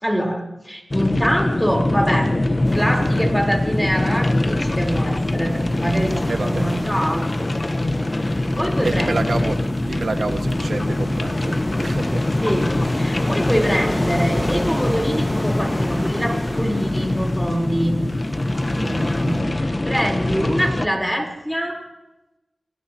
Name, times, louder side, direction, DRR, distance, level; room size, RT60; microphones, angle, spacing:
voice 1, 0.0-2.3 2.7-7.5 7.8-9.1 12.4-18.0 19.1-21.8, equal, ahead, 1 dB, 4.1 m, -24 dB
sound 1, 0.9-20.9, left 1 dB, 30° left, 1.2 m, -23 dB
sound 2, 2.6-19.4, left 1 dB, 15° left, 1.7 m, -33 dB
voice 2, 6.3-6.7 8.8-12.3 17.8-18.2 18.8-19.1, right 3 dB, 75° right, 5 dB, 1.8 m, -29 dB
28.5 x 17.0 x 3.0 m, 0.95 s
wide cardioid pair, 70°, 0 cm